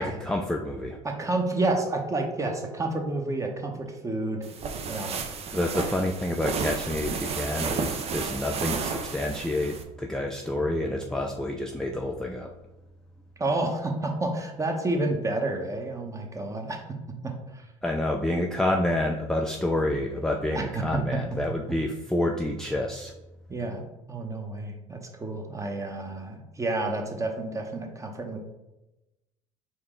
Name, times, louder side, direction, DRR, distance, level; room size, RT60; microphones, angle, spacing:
voice 1, 0.0-1.0 5.5-12.5 17.8-23.1, left 1 dB, 5° left, 1 dB, 0.4 m, -28 dB
voice 2, 1.0-4.4 4.9-5.2 13.4-16.8 17.2-17.7 20.5-21.0 23.5-23.8 24.1-28.4, right 2 dB, 20° right, 3 dB, 1.0 m, -30 dB
sound 1, 4.4-9.8, right 5 dB, 40° right, 0.6 m, -32 dB
4.5 x 2.8 x 3.7 m, 0.99 s
hypercardioid pair, 65°, 16 cm